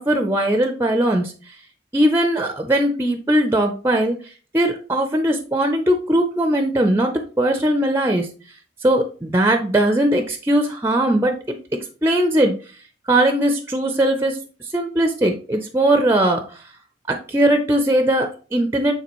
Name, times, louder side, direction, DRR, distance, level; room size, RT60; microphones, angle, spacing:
voice 1, 0.0-1.3 1.9-4.2 4.5-8.3 8.8-11.6 12.0-12.6 13.1-14.4 14.7-16.6 17.1-18.9, right 1 dB, 15° right, 6 dB, 0.5 m, -19 dB
8.6 x 3.8 x 3.0 m, 0.37 s
head